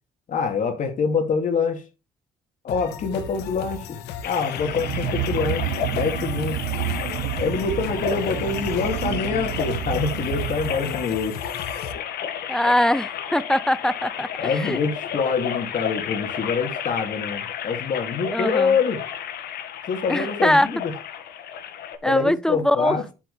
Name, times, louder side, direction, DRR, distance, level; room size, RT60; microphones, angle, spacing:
voice 1, 0.3-1.8 2.6-4.0 4.2-6.6 7.4-11.4 14.4-19.0 19.9-20.9 22.0-23.0, left 5 dB, 50° left, 2.5 m, -25 dB
sound 1, 2.7-11.9, left 7 dB, 85° left, 1.6 m, -36 dB
sound 2, 4.2-22.0, left 9 dB, 70° left, 1.9 m, -32 dB
sound 3, 4.6-11.1, right 15 dB, 75° right, 0.5 m, -30 dB
voice 2, 12.5-14.8 18.3-18.8 20.1-20.8 22.0-23.0, left 1 dB, 5° left, 0.4 m, -22 dB
10.0 x 8.3 x 3.4 m
cardioid pair, 110°, 17 cm